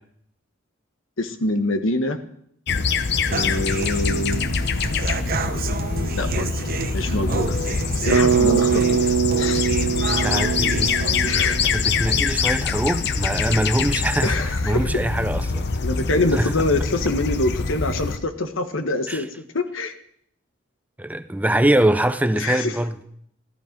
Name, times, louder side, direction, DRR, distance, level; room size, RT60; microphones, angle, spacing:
voice 1, 1.2-2.2 3.3-4.5 6.1-6.5 6.9-7.5 8.0-9.1 9.4-9.7 11.2-11.6 14.2-14.9 15.8-19.3 19.5-19.9 22.3-22.7, left 2 dB, 90° left, 1.4 m, -25 dB
sound 1, 2.7-18.2, left 4 dB, 60° left, 0.8 m, -24 dB
Human voice / Acoustic guitar, 3.3-11.3, right 4 dB, 50° right, 1.0 m, -30 dB
Bass guitar, 8.1-12.2, right 7 dB, 75° right, 0.6 m, -23 dB
voice 2, 10.1-10.9 11.6-15.7 16.3-16.5 19.1-19.2 21.0-23.0, right 1 dB, 10° right, 0.6 m, -23 dB
14.5 x 14.0 x 5.2 m
head